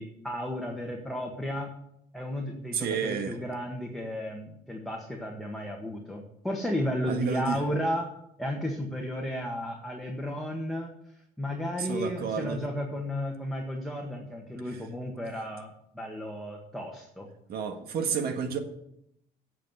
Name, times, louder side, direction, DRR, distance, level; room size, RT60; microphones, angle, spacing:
voice 1, 0.0-1.7 2.1-8.1 8.4-10.9 11.4-17.3, equal, ahead, -1 dB, 1.7 m, -33 dB
voice 2, 2.7-3.4 7.1-7.6 11.8-12.6 17.5-18.6, right 7 dB, 65° right, 6 dB, 1.6 m, -30 dB
8.2 x 7.5 x 8.1 m, 0.77 s
cardioid pair, 110°, 17 cm